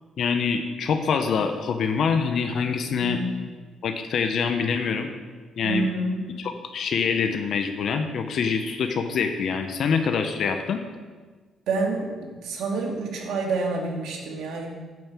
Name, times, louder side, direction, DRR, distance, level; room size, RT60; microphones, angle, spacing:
voice 1, 0.2-3.2 3.8-5.1 5.6-5.9 6.4-10.8, left 6 dB, 65° left, 6 dB, 0.8 m, -25 dB
voice 2, 2.9-3.4 5.6-6.3 11.7-14.7, right 3 dB, 80° right, 0 dB, 2.1 m, -28 dB
9.2 x 5.4 x 7.5 m, 1.4 s
cardioid pair, 90°, 0 cm